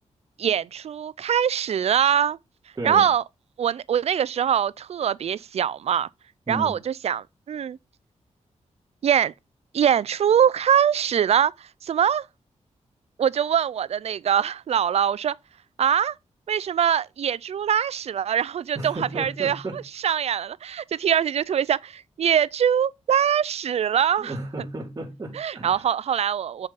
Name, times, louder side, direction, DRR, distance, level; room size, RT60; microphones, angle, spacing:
voice 1, 0.4-2.4 2.8-3.2 3.6-6.1 6.5-7.8 9.0-9.3 9.7-12.2 13.2-15.3 15.8-16.1 16.5-24.3 25.3-26.7, right 8 dB, 60° right, 0.4 m, -23 dB
voice 2, 2.7-3.1 6.5-6.8 18.7-19.8 24.2-25.9, right 2 dB, 25° right, 2.9 m, -33 dB
6.9 x 5.4 x 4.0 m
wide cardioid pair, 130°, 12 cm